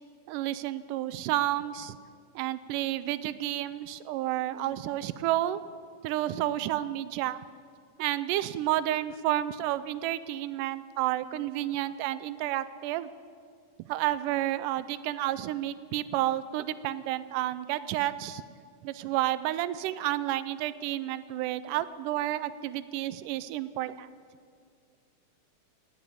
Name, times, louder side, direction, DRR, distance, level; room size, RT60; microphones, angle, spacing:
voice 1, 0.3-2.0 2.4-5.6 6.0-7.4 8.0-13.1 13.9-18.4 18.8-24.1, right 14 dB, 85° right, 15 dB, 2.1 m, -30 dB
17.5 x 7.1 x 9.3 m, 2.1 s
omnidirectional pair, 3.7 m